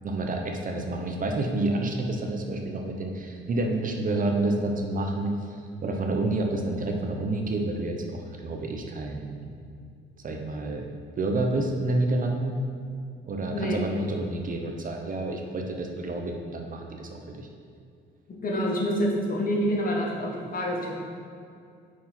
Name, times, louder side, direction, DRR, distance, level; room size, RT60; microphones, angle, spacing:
voice 1, 0.0-9.6 10.2-10.9 11.2-12.6 13.3-17.5, right 2 dB, 45° right, 2 dB, 0.8 m, -29 dB
voice 2, 18.3-21.0, equal, 45° left, -2 dB, 1.3 m, -27 dB
5.7 x 4.6 x 4.3 m, 2.4 s
cardioid pair, 90°, 20 cm